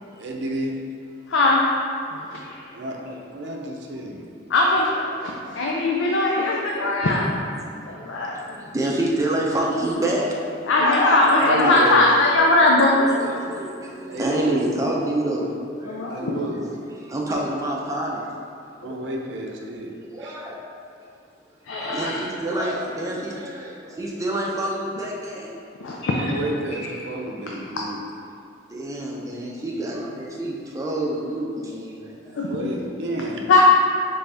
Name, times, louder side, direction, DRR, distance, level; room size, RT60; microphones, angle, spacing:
voice 1, 0.2-0.7 2.7-4.2 11.3-12.1 14.1-14.6 16.1-16.6 18.8-19.9 20.2-20.4 26.2-28.0 30.1-30.2 32.3-33.5, right 1 dB, 65° right, 0 dB, 0.5 m, -30 dB
voice 2, 1.3-1.6 2.1-2.6 4.5-7.6 7.8-8.4 10.7-13.0 15.9-16.4 18.8-18.9 21.7-22.1 25.8-26.3 32.4-32.5 33.5-33.6, left 2 dB, 90° left, -2 dB, 0.4 m, -20 dB
voice 3, 7.7-10.9 12.9-16.5 17.1-18.2 20.1-20.7 21.7-25.6 27.5-27.6 28.7-32.4, right 1 dB, 15° right, -3 dB, 0.5 m, -28 dB
3.9 x 3.4 x 3.4 m, 2.5 s
head